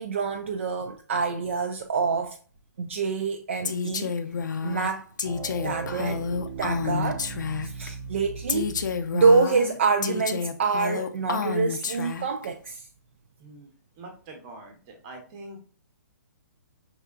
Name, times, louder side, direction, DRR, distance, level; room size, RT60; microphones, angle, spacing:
voice 1, 0.0-2.4 2.8-4.1 4.6-5.0 5.6-6.2 6.6-7.3 7.6-12.8, right 5 dB, 40° right, 0.3 m, -26 dB
Female speech woman speaking, 3.6-7.9 8.5-12.5, left 6 dB, 85° left, 0.6 m, -30 dB
sound 1, 5.2-9.2, right 5 dB, 85° right, 0.7 m, -38 dB
voice 2, 13.4-13.7 14.0-15.6, right 2 dB, 15° right, 0.8 m, -44 dB
5.4 x 3.5 x 2.4 m
hypercardioid pair, 175°, 10 cm